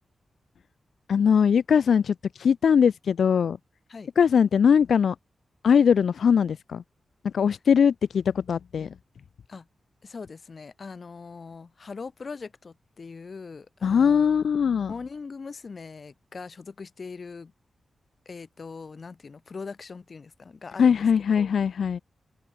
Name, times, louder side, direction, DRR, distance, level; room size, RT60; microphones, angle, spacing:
voice 1, 1.1-3.6 4.2-5.1 5.6-6.8 7.3-8.9 13.8-14.9 20.8-22.0, left 7 dB, 85° left, 1.2 m, -21 dB
voice 2, 10.0-14.3 14.9-17.5 18.2-21.5, left 4 dB, 45° left, 4.9 m, -41 dB
wide cardioid pair, 125°, 0 cm